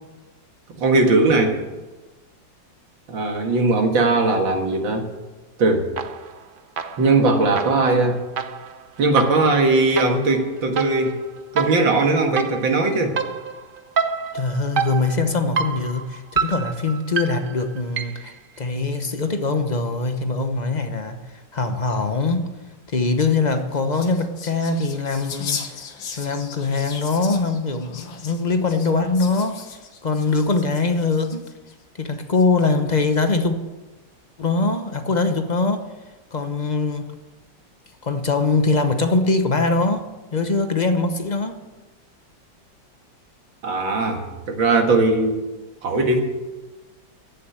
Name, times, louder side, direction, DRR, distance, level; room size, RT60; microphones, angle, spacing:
voice 1, 0.7-1.6 3.1-5.1 5.6-5.9 7.0-8.2 9.0-11.2 11.5-13.2 43.6-45.4 45.8-46.2, right 3 dB, 85° right, 2.6 m, -19 dB
sound 1, 6.0-6.4 6.8-18.4, right 6 dB, 65° right, 0.5 m, -29 dB
voice 2, 14.3-22.5 22.9-25.8 26.2-29.6 30.0-31.4 32.0-33.6 34.4-35.9 36.3-37.1 38.0-41.6, left 3 dB, 35° left, 0.7 m, -22 dB
sound 2, 23.3-31.7 32.3-33.0, left 6 dB, 85° left, 2.1 m, -37 dB
15.5 x 7.4 x 9.4 m
omnidirectional pair, 2.0 m